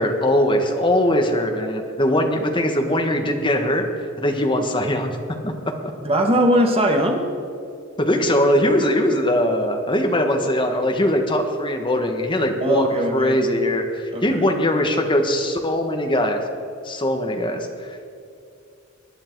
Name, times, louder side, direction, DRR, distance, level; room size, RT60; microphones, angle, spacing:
voice 1, 0.0-5.2 5.4-5.5 8.0-16.4 16.8-17.7, left 1 dB, 25° left, 4 dB, 1.4 m, -21 dB
voice 2, 6.0-7.3 12.6-13.4 14.1-14.4, right 1 dB, 30° right, 2 dB, 1.7 m, -20 dB
20.0 x 11.0 x 4.7 m, 2.5 s
head